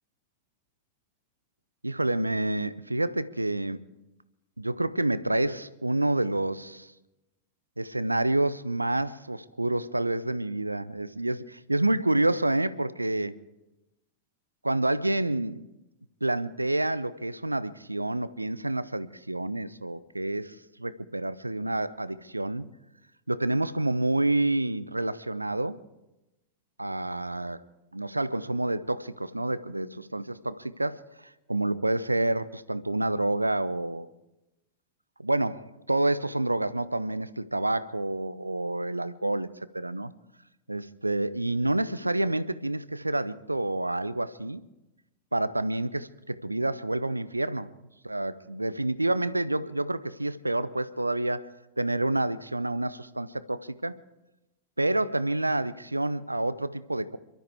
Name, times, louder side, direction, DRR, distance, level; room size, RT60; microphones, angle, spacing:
voice 1, 1.8-3.8 4.6-6.9 7.8-13.3 14.6-15.6 16.2-22.7 23.3-25.8 26.8-27.6 27.9-34.1 35.2-40.1 40.7-44.6 45.3-47.7 48.0-53.9 54.8-57.2, right 2 dB, 85° right, 0.6 m, -28 dB
28.0 x 13.0 x 3.4 m
figure-of-eight pair, 90°, 0 cm